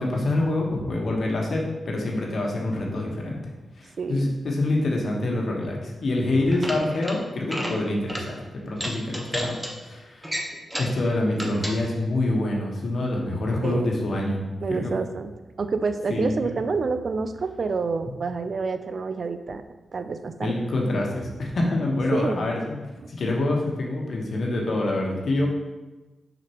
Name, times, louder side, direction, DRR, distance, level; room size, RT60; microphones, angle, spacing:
voice 1, 0.0-3.4 3.8-9.6 9.8-10.3 10.8-14.4 14.7-14.9 16.1-16.5 20.4-22.8 23.1-25.5, left 2 dB, 65° left, -1 dB, 1.3 m, -26 dB
voice 2, 4.0-4.3 13.6-13.9 14.6-15.3 15.6-19.6 19.9-20.6 22.1-22.4 23.0-23.1, right 4 dB, 55° right, 9 dB, 0.4 m, -28 dB
sound 1, 6.5-7.2 7.4-7.8 8.1-8.3 8.7-9.7 10.2-11.0 11.3-11.8, equal, 10° right, 1.0 m, -31 dB
6.3 x 5.0 x 3.0 m, 1.1 s
cardioid pair, 70°, 0 cm